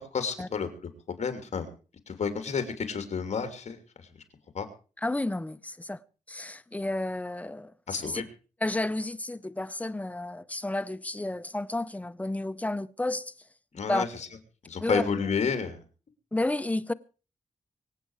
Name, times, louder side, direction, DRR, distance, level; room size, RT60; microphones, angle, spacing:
voice 1, 0.1-0.7 1.1-1.7 2.1-4.1 4.5-4.7 7.9-8.2 13.7-14.3 14.7-15.8, left 6 dB, 60° left, 2.9 m, -31 dB
voice 2, 5.0-6.0 6.3-8.2 8.6-13.3 13.9-14.0 14.8-15.0 16.3-16.9, left 2 dB, 10° left, 0.7 m, -31 dB
25.0 x 8.5 x 4.8 m
wide cardioid pair, 110°, 13 cm